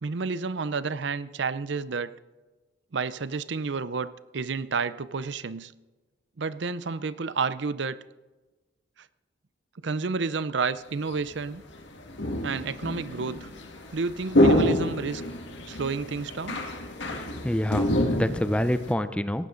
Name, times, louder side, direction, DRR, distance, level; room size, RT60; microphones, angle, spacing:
voice 1, 0.0-2.1 2.9-5.7 6.4-8.0 9.8-11.6 12.4-13.5 13.9-15.2 15.7-16.6, right 4 dB, 65° right, 15 dB, 0.6 m, -30 dB
sound 1, 11.1-11.2 11.7-18.9, equal, 65° left, 2.0 m, -27 dB
voice 2, 17.1-19.5, left 1 dB, 5° left, 12 dB, 0.5 m, -27 dB
18.0 x 15.0 x 3.9 m, 1.2 s
head